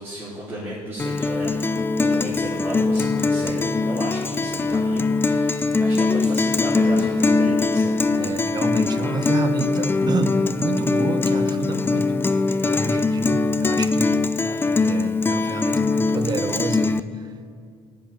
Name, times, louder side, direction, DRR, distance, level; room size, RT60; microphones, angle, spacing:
voice 1, 0.0-8.0 14.4-14.6, equal, 20° right, -9 dB, 3.4 m, -34 dB
Guitar, 1.0-17.0, left 3 dB, 20° left, 0.4 m, -22 dB
voice 2, 8.2-12.1 12.6-14.2 14.8-17.5, right 4 dB, 35° right, 9 dB, 0.9 m, -29 dB
11.5 x 5.6 x 9.0 m, 2.3 s
cardioid pair, 100°, 12 cm